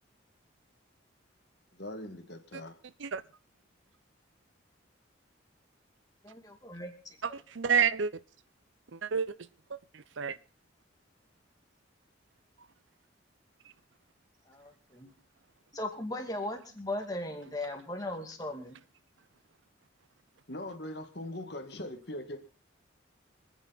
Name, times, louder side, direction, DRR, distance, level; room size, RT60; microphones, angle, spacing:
voice 1, 1.8-2.8 20.5-22.4, left 1 dB, 55° left, 1.8 m, -41 dB
voice 2, 6.2-6.9 7.3-7.4 14.5-15.1 15.7-18.8, left 1 dB, 20° left, 2.5 m, -38 dB
voice 3, 7.2-8.1 8.9-9.3 9.7-10.4, right 6 dB, 75° right, 0.7 m, -30 dB
26.0 x 9.5 x 4.1 m
head